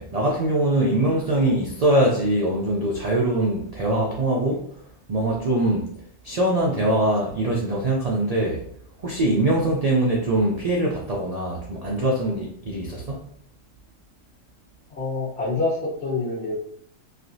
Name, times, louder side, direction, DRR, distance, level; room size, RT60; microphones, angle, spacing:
voice 1, 0.0-4.7 5.1-5.9 6.2-8.6 9.0-13.2, right 1 dB, 80° right, 0.3 m, -22 dB
voice 2, 14.9-16.6, left 3 dB, 55° left, 1.3 m, -26 dB
3.2 x 2.7 x 2.6 m
omnidirectional pair, 1.3 m